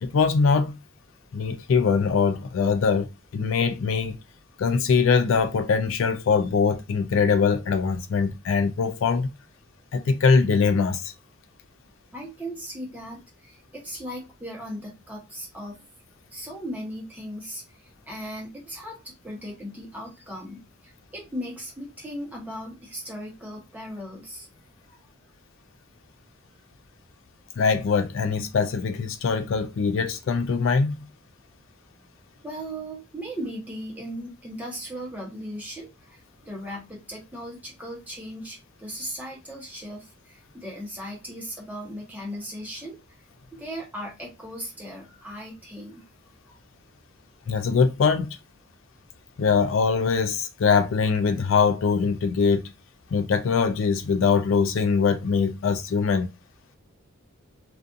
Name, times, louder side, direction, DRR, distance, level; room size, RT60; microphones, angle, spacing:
voice 1, 0.0-0.8 1.3-3.1 3.3-4.1 4.6-9.3 9.9-11.0 27.6-31.0 47.5-48.4 49.4-52.6 53.1-56.3, left 5 dB, 70° left, 0.3 m, -22 dB
voice 2, 12.1-15.8 16.3-24.5 24.9-25.0 32.4-43.0 43.5-46.1 46.5-46.6, equal, 10° right, 0.9 m, -37 dB
2.4 x 2.4 x 2.5 m
head